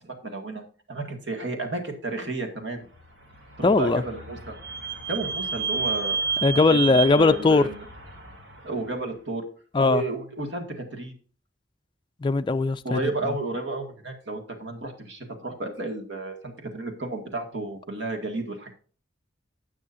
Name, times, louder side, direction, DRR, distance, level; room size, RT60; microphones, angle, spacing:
voice 1, 0.0-2.9 3.6-4.5 5.1-6.2 6.7-7.9 8.6-9.4 9.8-11.2 12.8-18.7, right 3 dB, 70° right, 2.0 m, -32 dB
Vehicle / Squeak, 3.2-8.8, right 5 dB, 90° right, 3.9 m, -31 dB
voice 2, 3.6-4.0 6.4-7.7 9.7-10.0 12.2-13.0, left 3 dB, 25° left, 0.3 m, -19 dB
17.0 x 6.2 x 2.6 m
head